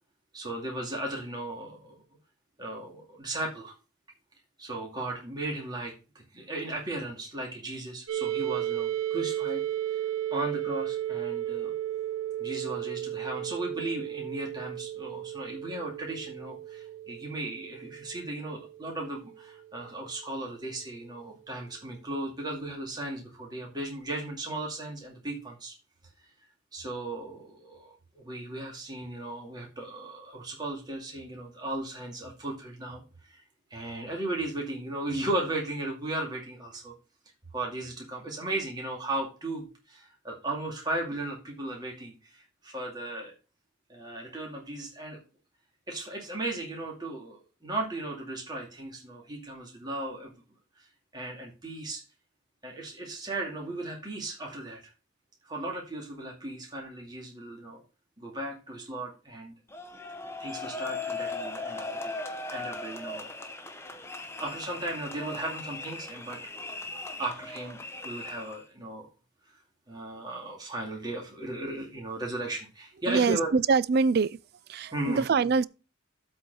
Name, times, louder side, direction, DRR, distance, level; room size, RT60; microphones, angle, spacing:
voice 1, 0.3-2.0 2.6-3.7 4.6-9.6 10.3-11.7 12.4-25.7 26.7-33.4 33.7-36.9 37.5-43.3 43.9-45.2 45.9-50.3 50.8-50.9 51.1-52.0 52.6-54.8 55.4-57.8 58.2-59.5 60.4-62.2 62.5-63.3 64.4-66.4 67.2-67.8 68.0-69.1 69.5-69.6 69.9-73.5 74.9-75.3, right 2 dB, 20° right, 2.3 m, -36 dB
sound 1, 8.1-19.8, right 12 dB, 75° right, 0.9 m, -34 dB
sound 2, 59.7-68.6, left 3 dB, 10° left, 0.8 m, -38 dB
voice 2, 73.1-74.4 74.7-75.6, right 5 dB, 50° right, 0.3 m, -24 dB
8.0 x 4.3 x 6.3 m
head